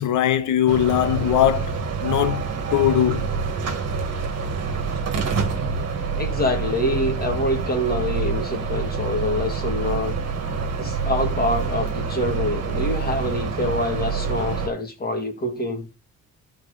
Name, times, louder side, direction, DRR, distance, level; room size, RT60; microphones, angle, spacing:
voice 1, 0.0-3.3, left 11 dB, 80° left, 1.1 m, -21 dB
sound 1, 0.7-14.7, right 5 dB, 55° right, 1.8 m, -26 dB
voice 2, 6.2-10.1 10.8-15.9, left 1 dB, 30° left, 2.5 m, -25 dB
13.5 x 4.7 x 3.9 m
cardioid pair, 90°, 30 cm